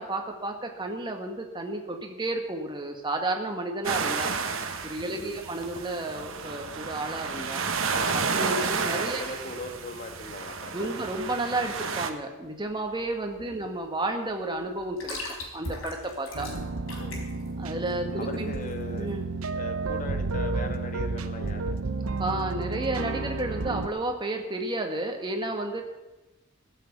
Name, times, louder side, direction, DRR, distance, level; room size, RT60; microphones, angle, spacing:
voice 1, 0.0-4.3 4.8-7.7 8.1-9.2 10.7-16.5 17.6-18.5 18.9-19.3 22.2-25.8, right 2 dB, 20° right, 3 dB, 1.6 m, -32 dB
sound 1, 3.8-12.1, right 5 dB, 65° right, 1.2 m, -31 dB
voice 2, 5.0-5.5 9.1-10.9 13.5-13.7 17.0-17.2 18.2-19.1 19.5-21.9, left 2 dB, 40° left, 5 dB, 1.5 m, -39 dB
sound 2, 12.4-19.2, left 2 dB, 75° left, 4.5 m, -41 dB
sound 3, 16.3-23.9, right 3 dB, 85° right, 0.9 m, -31 dB
15.0 x 7.7 x 8.3 m, 1.1 s
head